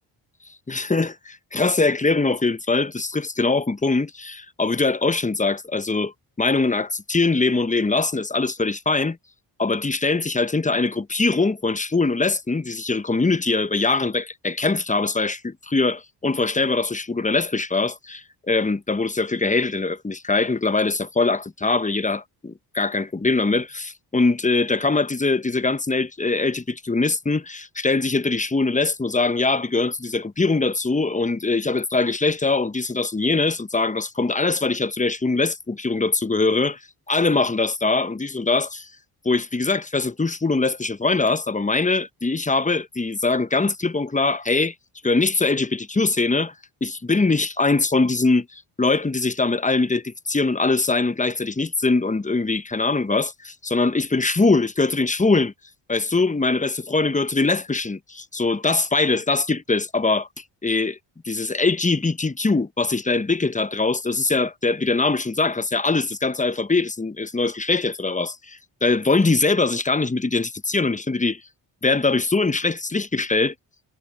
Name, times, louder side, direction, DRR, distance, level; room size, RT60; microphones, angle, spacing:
voice 1, 0.7-6.1 6.4-9.2 9.6-36.8 37.1-38.9 39.2-44.7 45.0-46.5 46.8-55.5 55.9-61.0 61.2-71.4 71.8-73.5, left 3 dB, 15° left, 1.1 m, -22 dB
supercardioid pair, 45°, 48 cm